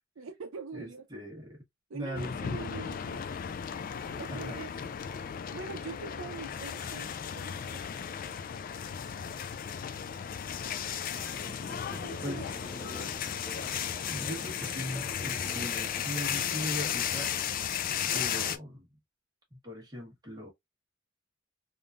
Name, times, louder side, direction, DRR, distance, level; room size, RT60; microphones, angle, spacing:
voice 1, 0.2-1.1 1.9-3.3 3.7-3.8 4.2-4.7 5.5-8.0 12.0-12.4 12.8-13.2, right 5 dB, 85° right, 0.5 m, -43 dB
voice 2, 0.7-1.6 1.9-2.9 4.3-4.6 12.2-12.5 14.1-17.6 18.1-18.9 19.5-20.5, equal, 20° right, 1.3 m, -39 dB
sound 1, 2.2-18.6, left 8 dB, 45° left, 0.3 m, -35 dB
sound 2, 11.1-16.6, equal, 5° left, 0.8 m, -48 dB
3.5 x 2.6 x 2.4 m
head